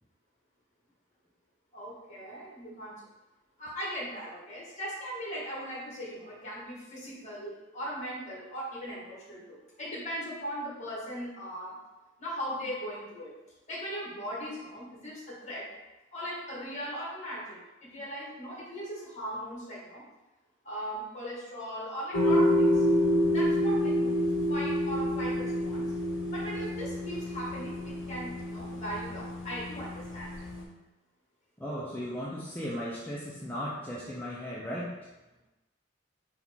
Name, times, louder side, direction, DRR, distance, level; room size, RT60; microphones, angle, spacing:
voice 1, 1.7-2.9 3.6-11.8 12.2-13.3 13.7-15.7 16.1-20.0 20.6-22.8 23.3-24.1 24.5-25.9 26.3-30.3, equal, 40° left, -5 dB, 1.3 m, -39 dB
sound 1, 22.1-30.6, equal, 80° left, 0.7 m, -28 dB
voice 2, 31.6-35.0, equal, 10° left, -7 dB, 0.4 m, -36 dB
4.1 x 2.2 x 4.2 m, 1.1 s
head